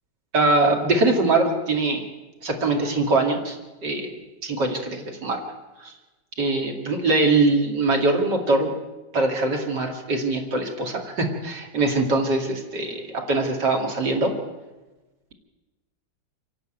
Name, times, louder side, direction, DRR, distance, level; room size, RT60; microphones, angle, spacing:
voice 1, 0.3-2.0 2.4-3.6 3.8-5.4 5.8-5.9 6.4-8.7 9.1-14.3, right 2 dB, 65° right, 3 dB, 2.9 m, -22 dB
27.0 x 11.5 x 8.9 m, 1.1 s
omnidirectional pair, 2.0 m